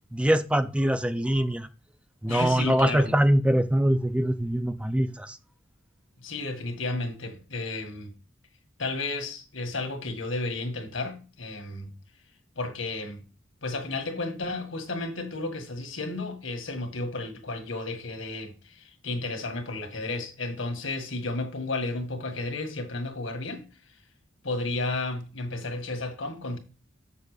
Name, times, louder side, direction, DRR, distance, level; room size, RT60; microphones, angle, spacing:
voice 1, 0.1-1.7 2.2-5.4, right 1 dB, 5° right, 0.4 m, -23 dB
voice 2, 2.3-3.1 6.2-8.1 8.8-11.9 12.6-13.2 13.6-23.6 24.4-26.6, left 2 dB, 85° left, 1.8 m, -32 dB
7.1 x 6.7 x 5.0 m
head